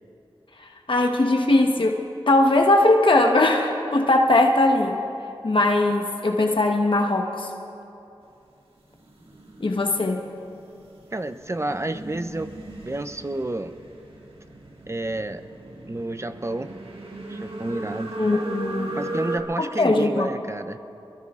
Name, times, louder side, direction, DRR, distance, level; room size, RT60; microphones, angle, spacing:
voice 1, 0.6-2.0 2.3-5.0 5.4-7.5 9.6-10.2 18.2-19.0 19.8-20.3, left 2 dB, 60° left, 3 dB, 1.2 m, -20 dB
sound 1, 8.9-19.4, right 2 dB, 70° right, 1.8 m, -37 dB
voice 2, 11.1-12.5 12.8-13.8 14.9-15.4 15.9-16.7 17.3-18.2 19.0-20.8, right 2 dB, 30° right, 9 dB, 0.7 m, -30 dB
23.5 x 22.5 x 2.5 m, 2.8 s
cardioid pair, 45°, 10 cm